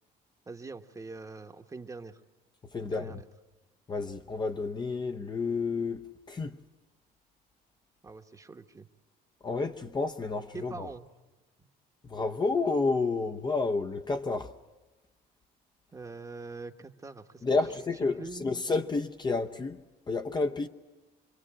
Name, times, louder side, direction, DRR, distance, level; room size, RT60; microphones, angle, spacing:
voice 1, 0.5-2.2 2.8-3.3 8.0-8.9 10.5-11.1 15.9-17.6 18.0-18.5, right 3 dB, 20° right, 1.1 m, -43 dB
voice 2, 2.7-3.2 3.9-6.6 9.4-10.9 12.0-14.5 17.4-20.7, left 3 dB, 25° left, 0.8 m, -30 dB
26.0 x 22.0 x 8.8 m
cardioid pair, 110°, 17 cm